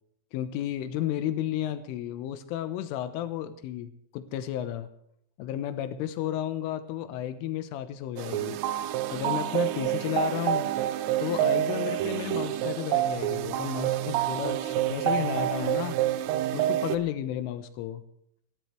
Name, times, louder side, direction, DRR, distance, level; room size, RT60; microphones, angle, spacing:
voice 1, 0.3-4.9 5.4-8.6 9.1-10.7 11.2-16.0 16.5-18.0, left 11 dB, 90° left, 11 dB, 3.5 m, -32 dB
sound 1, 8.2-17.0, right 12 dB, 85° right, 3.5 m, -28 dB
28.0 x 12.5 x 3.3 m, 0.72 s
omnidirectional pair, 5.7 m